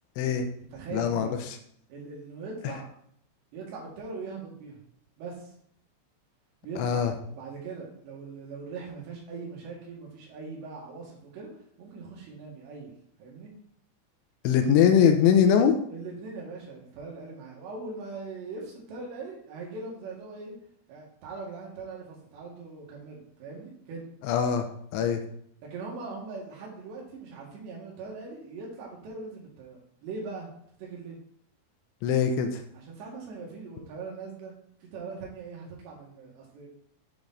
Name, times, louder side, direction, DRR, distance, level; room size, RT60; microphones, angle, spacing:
voice 1, 0.2-0.5 0.9-1.4 6.8-7.1 14.4-15.7 24.2-24.7 24.9-25.2 32.0-32.6, left 8 dB, 80° left, 6 dB, 2.9 m, -22 dB
voice 2, 0.7-1.3 1.9-2.9 3.5-4.8 5.2-5.5 6.6-11.5 11.8-12.9 13.2-13.5 15.9-20.5 20.9-24.1 25.7-30.5 30.8-31.2 32.7-34.5 34.8-36.7, right 4 dB, 65° right, -3 dB, 3.9 m, -41 dB
8.5 x 5.1 x 3.9 m, 0.67 s
omnidirectional pair, 5.8 m